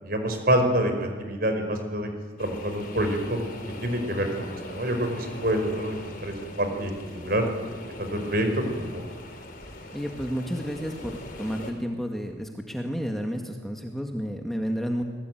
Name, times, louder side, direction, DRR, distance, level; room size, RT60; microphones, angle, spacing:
voice 1, 0.0-2.1 2.4-3.4 3.8-7.5 8.0-9.0, right 1 dB, 50° right, 5 dB, 5.2 m, -27 dB
sound 1, 2.4-11.7, left 1 dB, 45° left, 4.4 m, -41 dB
voice 2, 9.9-15.0, equal, ahead, 2 dB, 1.9 m, -31 dB
27.0 x 20.0 x 9.4 m, 1.4 s
head